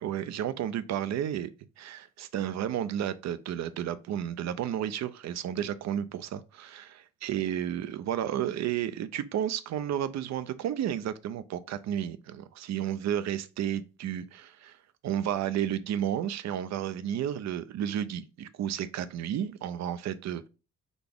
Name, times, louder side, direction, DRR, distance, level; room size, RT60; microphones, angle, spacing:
voice 1, 0.0-1.5 1.8-14.8 15.0-20.5, right 10 dB, 60° right, 0.5 m, -32 dB
4.0 x 3.4 x 3.5 m
cardioid pair, 90°, 30 cm